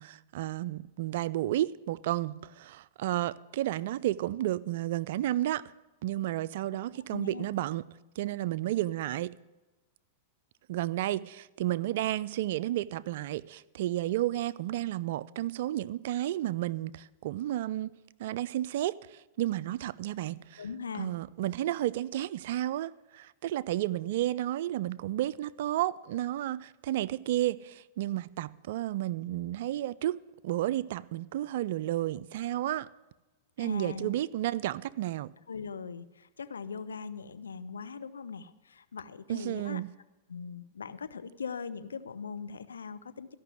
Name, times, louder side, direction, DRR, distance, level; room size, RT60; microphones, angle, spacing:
voice 1, 0.0-5.7 6.0-7.8 8.2-9.3 10.7-17.9 18.2-20.6 21.0-32.9 33.6-35.3 39.3-39.9, right 14 dB, 65° right, 0.4 m, -32 dB
voice 2, 7.1-7.5 20.6-21.1 33.6-34.1 35.5-39.8 40.3-43.3, left 5 dB, 90° left, 0.6 m, -40 dB
13.5 x 5.9 x 9.1 m
hypercardioid pair, 110°, 0 cm